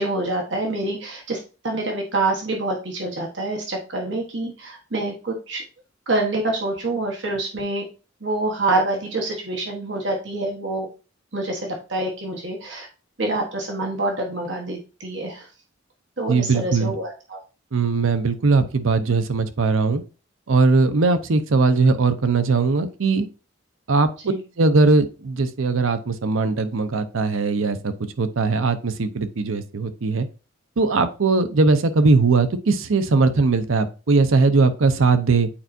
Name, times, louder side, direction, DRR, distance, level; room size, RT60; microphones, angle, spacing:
voice 1, 0.0-5.6 6.1-7.8 8.2-10.9 11.3-12.9 13.2-15.5 16.2-17.4 24.2-24.4, right 2 dB, 60° right, 0 dB, 1.3 m, -26 dB
voice 2, 16.3-16.9 17.7-20.0 20.5-23.3 23.9-24.1 24.6-30.3 30.8-35.5, right 3 dB, 80° right, 10 dB, 0.7 m, -19 dB
8.6 x 4.4 x 2.6 m, 0.33 s
head